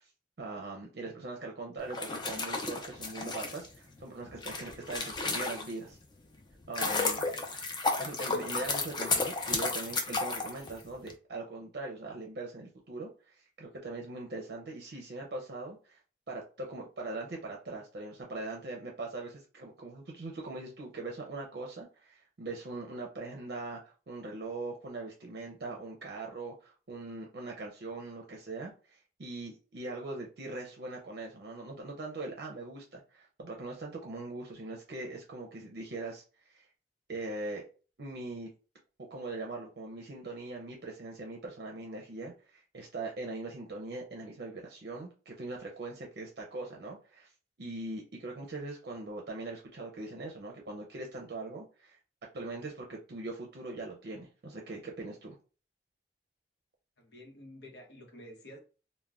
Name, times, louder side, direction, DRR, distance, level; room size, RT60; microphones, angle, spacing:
voice 1, 0.4-6.0 6.7-7.2 8.0-16.0 16.3-36.7 37.1-37.6 38.0-38.5 39.1-47.3 47.6-52.0 52.3-55.4, right 2 dB, 60° right, 0.5 m, -41 dB
sound 1, 1.8-5.9 6.4-11.1, left 3 dB, 25° left, 0.4 m, -33 dB
voice 2, 57.0-58.6, equal, 75° left, 0.9 m, -50 dB
2.4 x 2.1 x 3.3 m
head